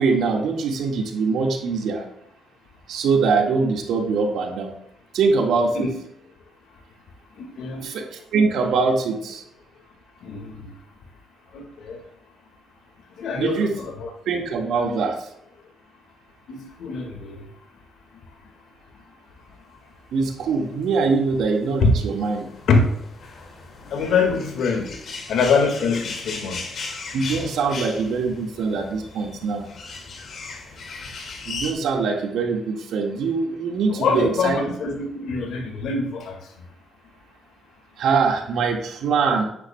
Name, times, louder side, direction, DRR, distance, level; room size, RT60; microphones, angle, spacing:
voice 1, 0.0-2.0 2.9-4.7 5.1-5.9 7.8-9.4 13.4-13.7 14.3-15.3 20.1-22.4 27.1-29.7 31.5-34.6 38.0-39.4, right 4 dB, 80° right, 1 dB, 1.9 m, -23 dB
voice 2, 7.4-7.9 10.2-10.7 11.5-12.0 13.2-14.1 14.7-15.0 16.5-17.4 21.8-21.9 22.7-22.8 23.9-24.9 25.3-26.6 34.0-36.4, left 4 dB, 75° left, 3 dB, 2.0 m, -24 dB
sound 1, 20.6-31.7, left 4 dB, 60° left, 2.3 m, -37 dB
10.0 x 9.6 x 2.3 m, 0.76 s
cardioid pair, 75°, 0 cm